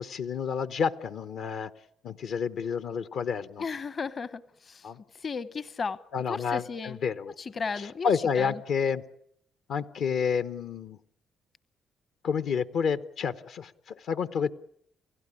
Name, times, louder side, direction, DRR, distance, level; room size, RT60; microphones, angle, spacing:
voice 1, 0.0-1.7 2.0-3.6 4.8-5.0 6.1-7.3 7.7-9.0 9.7-11.0 12.2-14.5, left 6 dB, 70° left, 12 dB, 1.0 m, -29 dB
voice 2, 3.6-4.8 5.2-6.0 6.3-7.0 7.4-8.1 8.4-8.6, left 5 dB, 40° left, 15 dB, 0.9 m, -34 dB
29.5 x 16.0 x 9.9 m, 0.74 s
cardioid pair, 90°, 0 cm